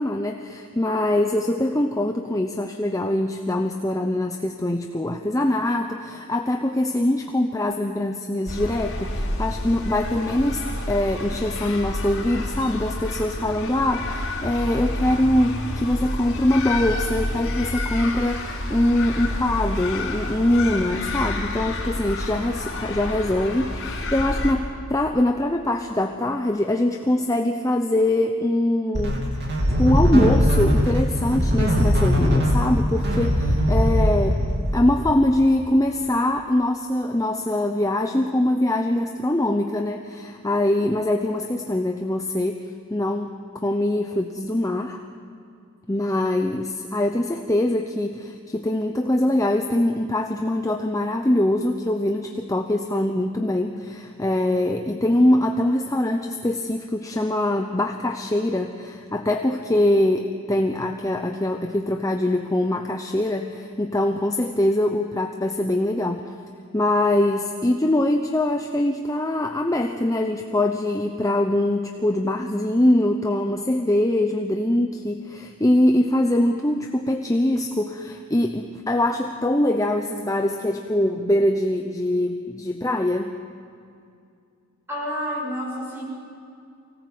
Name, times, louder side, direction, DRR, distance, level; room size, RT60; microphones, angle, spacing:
voice 1, 0.0-34.4 34.7-42.6 42.9-45.0 45.9-66.2 66.7-83.3, left 1 dB, 15° left, 4 dB, 0.8 m, -23 dB
sound 1, 8.5-24.5, left 1 dB, 65° left, 4.0 m, -29 dB
sound 2, 28.9-34.8, equal, 50° right, 2.8 m, -20 dB
voice 2, 84.9-86.0, equal, 10° right, -3 dB, 6.9 m, -29 dB
24.5 x 17.5 x 7.8 m, 2.4 s
head